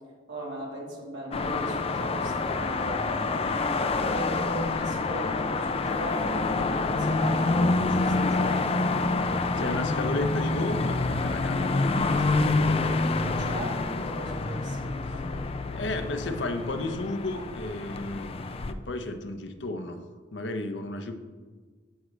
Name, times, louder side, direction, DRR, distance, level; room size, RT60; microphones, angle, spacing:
voice 1, 0.3-3.5 4.0-8.7 9.4-9.8 13.2-15.4, right 1 dB, 80° right, -4 dB, 3.2 m, -38 dB
sound 1, 1.3-18.7, left 3 dB, 30° left, 0.4 m, -27 dB
voice 2, 9.6-12.8 15.6-20.0 20.3-21.1, left 2 dB, 75° left, 7 dB, 0.8 m, -33 dB
15.5 x 6.3 x 3.3 m, 1.5 s
head